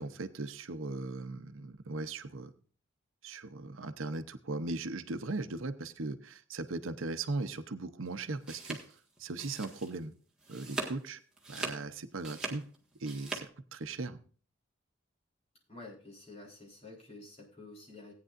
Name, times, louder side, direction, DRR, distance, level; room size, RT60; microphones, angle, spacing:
voice 1, 0.0-2.5 3.2-8.8 9.2-10.1 10.5-11.2 11.5-12.7 13.0-14.2, right 3 dB, 85° right, 11 dB, 0.8 m, -38 dB
sound 1, 8.2-10.1 10.4-11.0 11.4-13.4, right 3 dB, 5° right, 1.6 m, -40 dB
voice 2, 15.7-18.1, left 2 dB, 30° left, -2 dB, 4.0 m, -50 dB
17.5 x 9.3 x 2.5 m, 0.42 s
head